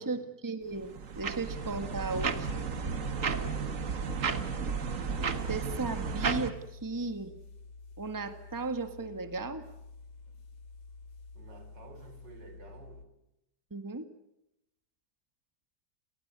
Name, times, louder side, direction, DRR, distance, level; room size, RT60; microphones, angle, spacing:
voice 1, 0.0-2.7 5.5-7.3 8.0-9.6 13.7-14.0, right 3 dB, 10° right, 10 dB, 1.6 m, -36 dB
sound 1, 0.7-6.5, right 5 dB, 50° right, 1.8 m, -33 dB
sound 2, 1.3-13.1, left 4 dB, 80° left, 2.6 m, -50 dB
voice 2, 3.3-3.9 11.3-13.1, right 3 dB, 80° right, 8 dB, 5.0 m, -52 dB
30.0 x 18.5 x 9.6 m, 0.85 s
omnidirectional pair, 1.9 m